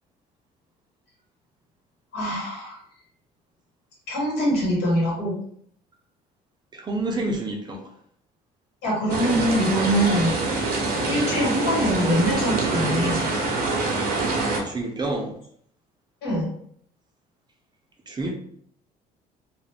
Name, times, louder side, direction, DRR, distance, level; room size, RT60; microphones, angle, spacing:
voice 1, 2.1-2.8 4.1-5.4 8.8-10.3 11.1-13.2 16.2-16.5, equal, 80° left, -4 dB, 1.3 m, -23 dB
voice 2, 6.7-7.9 14.6-15.4 18.1-18.3, right 2 dB, 25° right, 1 dB, 0.5 m, -28 dB
sound 1, 9.1-14.6, right 3 dB, 65° right, 0.7 m, -25 dB
2.4 x 2.0 x 3.2 m, 0.65 s
cardioid pair, 110°, 17 cm